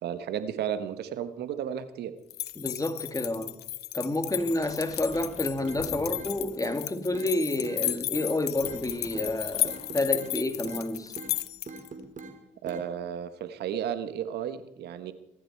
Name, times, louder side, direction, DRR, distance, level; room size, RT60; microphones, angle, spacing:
voice 1, 0.0-2.1 12.6-15.1, right 9 dB, 85° right, 1.2 m, -33 dB
sound 1, 2.3-11.9, left 14 dB, 80° left, 0.8 m, -34 dB
voice 2, 2.6-3.6 3.9-11.2, left 2 dB, 20° left, 2.6 m, -29 dB
Sliding door, 4.2-6.7 8.3-11.5, left 4 dB, 35° left, 1.7 m, -49 dB
sound 2, 5.1-5.3 5.6-6.3 6.6-6.8 7.1-7.3 7.6-8.3 8.6-8.8 9.1-9.3 9.6-10.3 10.6-10.8 11.2-11.3 11.7-12.3 12.7-12.9, right 3 dB, 50° right, 3.1 m, -41 dB
24.0 x 13.0 x 4.6 m
supercardioid pair, 45°, 17 cm